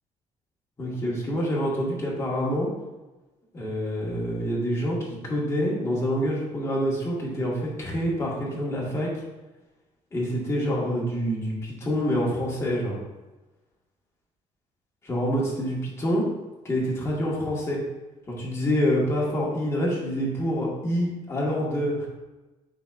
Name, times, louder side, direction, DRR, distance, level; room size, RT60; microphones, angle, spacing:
voice 1, 0.8-2.7 3.5-9.1 10.1-13.0 15.0-16.2 16.6-17.8 18.4-22.1, equal, 20° left, -4 dB, 1.6 m, -26 dB
9.9 x 4.0 x 2.5 m, 1.1 s
cardioid pair, 150°, 13 cm